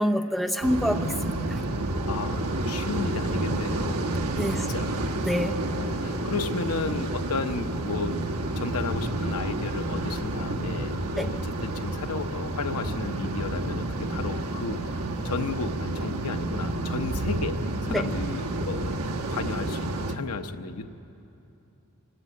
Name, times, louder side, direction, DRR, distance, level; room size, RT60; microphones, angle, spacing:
voice 1, 0.0-1.6 4.4-4.7 5.2-5.5 11.2-11.3 17.9-18.1, equal, ahead, 4 dB, 0.7 m, -27 dB
sound 1, 0.6-20.2, right 1 dB, 75° right, 1.1 m, -30 dB
voice 2, 2.1-4.0 4.5-5.0 5.4-8.2 8.6-20.9, left 4 dB, 85° left, 7 dB, 0.9 m, -34 dB
26.0 x 13.0 x 8.4 m, 2.8 s
head